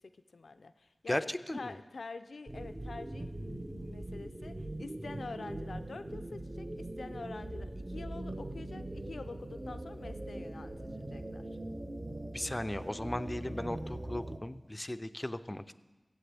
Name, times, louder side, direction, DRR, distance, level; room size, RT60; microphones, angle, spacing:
voice 1, 0.0-11.5, left 3 dB, 85° left, 10 dB, 0.5 m, -46 dB
voice 2, 1.1-1.7 12.3-15.7, left 1 dB, 20° left, 11 dB, 0.5 m, -36 dB
sound 1, 2.5-14.4, right 1 dB, 35° right, 0.9 m, -41 dB
23.0 x 8.0 x 3.4 m, 1.2 s
wide cardioid pair, 80°, 0 cm